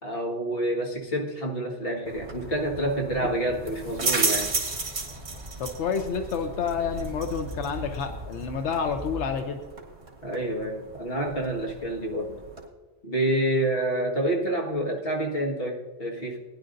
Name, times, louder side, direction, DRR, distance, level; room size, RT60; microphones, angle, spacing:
voice 1, 0.0-4.5 10.2-12.4 13.0-16.4, right 1 dB, 55° left, -2 dB, 1.9 m, -28 dB
sound 1, 2.1-12.7, right 3 dB, 70° right, 2.1 m, -34 dB
Speech / Wind, 4.3-9.2, right 1 dB, 30° left, 4.2 m, -41 dB
voice 2, 5.6-9.6, left 6 dB, 85° left, 5 dB, 1.1 m, -29 dB
19.5 x 10.5 x 2.6 m, 1.3 s
omnidirectional pair, 1.1 m